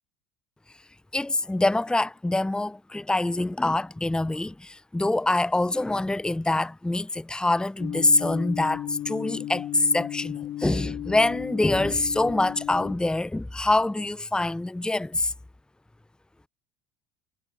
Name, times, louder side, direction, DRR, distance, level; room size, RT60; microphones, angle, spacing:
voice 1, 1.1-15.3, left 2 dB, 5° left, 1.0 m, -25 dB
sound 1, 7.8-12.9, left 12 dB, 50° left, 5.4 m, -35 dB
hypercardioid pair, 70°, 12 cm